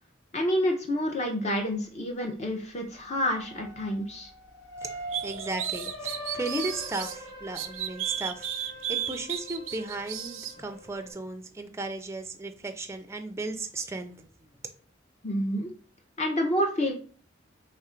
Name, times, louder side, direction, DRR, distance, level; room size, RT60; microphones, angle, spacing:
voice 1, 0.3-4.3 15.2-15.7 16.2-16.9, equal, 35° left, 2 dB, 0.6 m, -28 dB
sound 1, 2.9-11.1, equal, 65° left, 1.1 m, -42 dB
voice 2, 4.8-14.3, right 2 dB, 15° right, 6 dB, 0.4 m, -36 dB
sound 2, 5.1-7.2 7.6-10.5, right 10 dB, 90° right, 0.5 m, -33 dB
3.2 x 2.5 x 4.3 m, 0.42 s
head